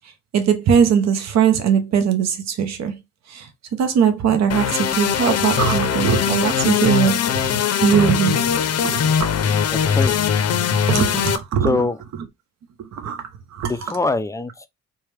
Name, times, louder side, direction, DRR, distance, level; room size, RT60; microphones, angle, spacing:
voice 1, 0.3-2.9 3.3-3.5 3.8-7.2 7.5-8.5 8.8-9.4 10.9-11.8 12.8-13.2 13.5-13.7, right 7 dB, 60° right, 0.8 m, -20 dB
sound 1, 4.5-11.4, left 8 dB, 55° left, 0.6 m, -21 dB
voice 2, 9.7-10.2 11.6-12.0 13.6-14.7, left 3 dB, 10° left, 0.4 m, -23 dB
4.6 x 2.3 x 3.3 m
cardioid pair, 90°, 30 cm